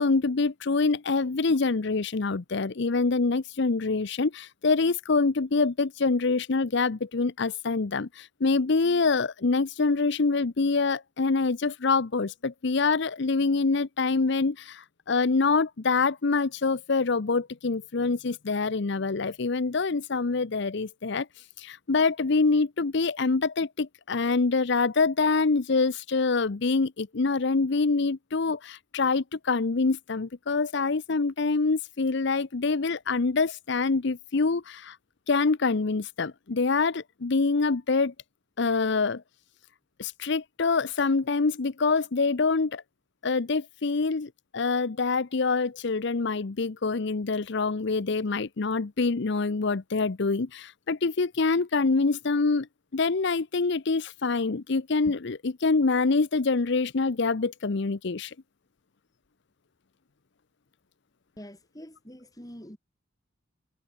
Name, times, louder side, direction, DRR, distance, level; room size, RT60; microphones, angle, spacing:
voice 1, 0.0-21.3 21.6-35.0 35.3-38.1 38.6-39.2 40.0-42.8 43.2-52.7 52.9-58.3, left 4 dB, 60° left, 0.7 m, -25 dB
voice 2, 61.4-62.8, equal, 20° left, 5.7 m, -45 dB
head